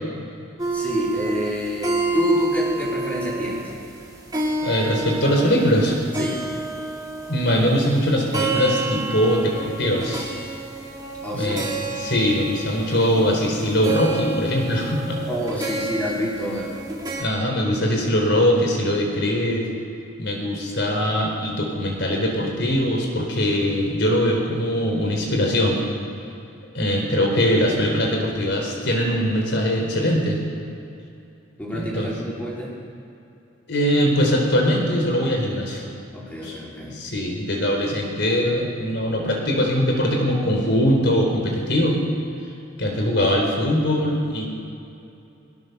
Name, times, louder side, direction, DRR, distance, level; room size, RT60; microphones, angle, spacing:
sound 1, 0.6-17.2, right 3 dB, 20° right, 2.9 m, -29 dB
voice 1, 0.7-3.7 6.2-6.4 11.2-11.6 15.3-16.7 27.2-27.8 31.6-32.7 36.1-37.0, left 1 dB, 10° left, -5 dB, 4.5 m, -28 dB
voice 2, 4.6-6.0 7.3-10.3 11.3-11.7 12.0-15.2 17.2-19.7 20.2-25.8 26.7-30.4 31.7-32.1 33.7-35.8 36.4-36.6 36.9-42.0 42.8-44.5, equal, 60° left, 1 dB, 4.3 m, -21 dB
22.0 x 22.0 x 6.9 m, 2.7 s
head